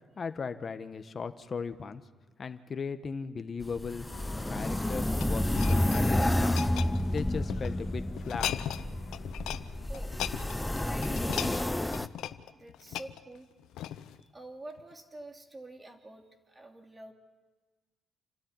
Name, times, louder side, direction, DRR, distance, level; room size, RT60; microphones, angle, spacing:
voice 1, 0.2-2.0 2.4-4.0 4.5-6.6 7.1-8.5, left 5 dB, 40° left, 9 dB, 1.3 m, -37 dB
sound 1, 3.6-12.1, left 1 dB, 10° left, 0.7 m, -30 dB
sound 2, 4.1-9.9, left 6 dB, 65° left, 2.0 m, -48 dB
sound 3, 4.5-7.7 8.2-8.9 9.1-9.6 9.9-14.2 14.8-14.9, left 12 dB, 85° left, 0.8 m, -38 dB
voice 2, 10.6-11.6 12.5-13.5 14.2-17.1, right 2 dB, 20° right, 4 dB, 2.8 m, -48 dB
28.5 x 13.0 x 9.7 m, 1.4 s
cardioid pair, 90°, 0 cm